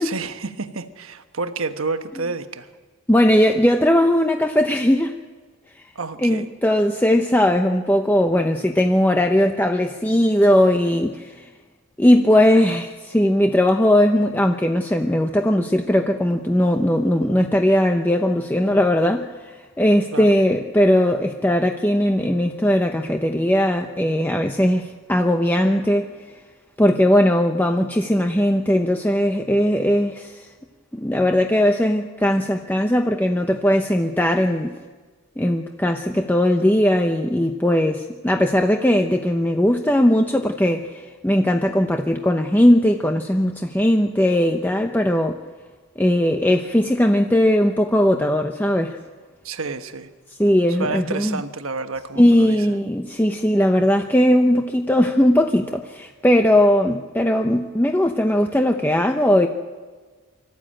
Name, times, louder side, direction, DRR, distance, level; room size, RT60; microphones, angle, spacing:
voice 1, 0.0-2.7 5.9-6.5 20.1-20.4 49.4-50.1 50.7-52.7, right 3 dB, 70° right, 8 dB, 1.2 m, -29 dB
voice 2, 3.1-5.1 5.8-5.9 6.2-11.5 12.0-26.1 26.8-30.5 30.9-34.7 35.4-45.4 46.0-49.0 50.4-51.4 52.2-59.5, left 1 dB, 10° left, 4 dB, 0.7 m, -19 dB
25.0 x 14.5 x 8.8 m, 1.4 s
head